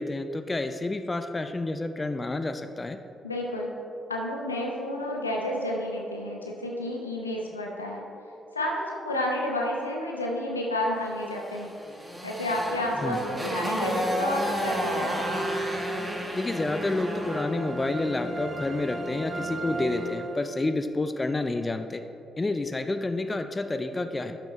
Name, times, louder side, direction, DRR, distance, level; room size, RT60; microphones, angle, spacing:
voice 1, 0.0-3.0 13.0-13.2 16.3-22.0 22.4-24.4, left 2 dB, 25° left, 9 dB, 0.4 m, -29 dB
voice 2, 3.2-3.7 4.1-8.1 8.5-11.7 12.2-15.2, left 1 dB, 85° left, -1 dB, 0.7 m, -30 dB
Motorcycle, 11.5-17.6, equal, 15° right, 1.2 m, -32 dB
sound 1, 12.5-20.8, right 1 dB, 35° right, 1.1 m, -35 dB
11.5 x 5.9 x 3.2 m, 2.7 s
figure-of-eight pair, 40°, 0 cm